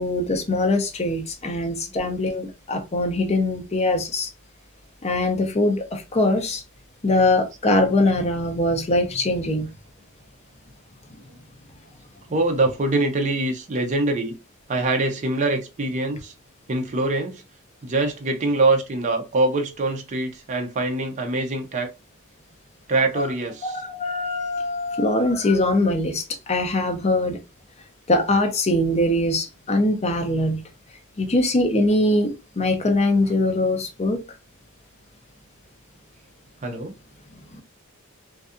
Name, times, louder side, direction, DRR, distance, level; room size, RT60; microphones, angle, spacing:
voice 1, 0.0-4.3 5.0-6.6 7.0-9.7 23.1-23.3 23.6-27.4 28.1-30.6 31.2-34.2 37.5-37.6, left 2 dB, 30° left, 0.5 m, -22 dB
voice 2, 12.3-14.4 14.7-16.3 16.7-17.4 17.8-21.9 22.9-23.8 36.6-36.9, right 2 dB, 35° right, 0.4 m, -24 dB
2.6 x 2.3 x 2.4 m
head